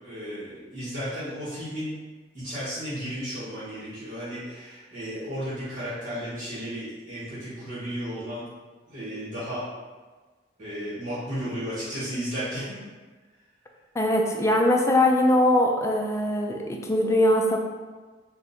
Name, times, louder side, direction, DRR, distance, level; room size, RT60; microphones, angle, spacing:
voice 1, 0.0-1.9 2.3-8.4 8.9-9.7 10.6-12.6, equal, 45° right, -12 dB, 1.4 m, -34 dB
voice 2, 13.9-17.6, left 1 dB, 15° left, 1 dB, 0.4 m, -21 dB
3.5 x 2.6 x 4.2 m, 1.4 s
head